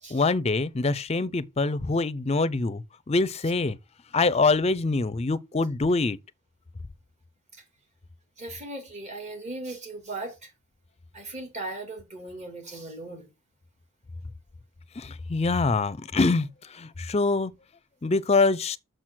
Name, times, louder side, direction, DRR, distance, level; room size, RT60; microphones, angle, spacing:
voice 1, 0.1-2.8 3.1-3.8 4.1-6.2 15.0-16.5 16.8-17.5 18.0-18.8, left 3 dB, 30° left, 0.5 m, -24 dB
voice 2, 8.4-10.5 11.1-13.3, right 2 dB, 35° right, 2.7 m, -38 dB
6.5 x 6.1 x 6.3 m
head